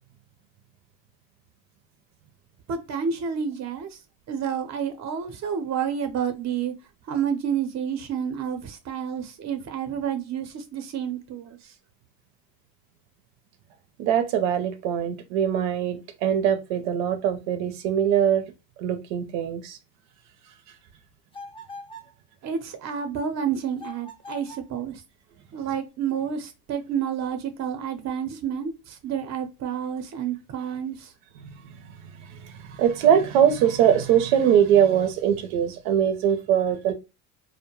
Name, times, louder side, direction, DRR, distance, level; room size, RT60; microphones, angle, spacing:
voice 1, 2.7-4.0 4.3-6.7 7.1-11.7 22.4-25.0 25.5-31.1, right 7 dB, 40° right, 0.7 m, -29 dB
voice 2, 14.0-18.5 18.8-19.8 31.4-31.7 32.2-36.9, right 9 dB, 85° right, 0.6 m, -22 dB
sound 1, 21.3-22.2 23.8-24.7, left 1 dB, 15° left, 0.6 m, -42 dB
2.2 x 2.2 x 2.9 m
supercardioid pair, 90°, 42 cm